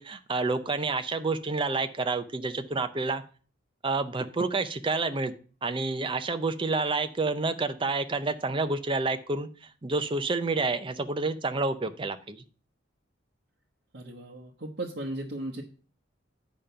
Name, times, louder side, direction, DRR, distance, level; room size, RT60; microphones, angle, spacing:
voice 1, 0.0-3.2 3.8-5.3 5.6-9.5 9.8-12.4, right 3 dB, 25° right, 9 dB, 0.6 m, -29 dB
voice 2, 13.9-15.6, right 1 dB, 60° right, -2 dB, 1.0 m, -36 dB
8.7 x 5.1 x 5.6 m, 0.40 s
head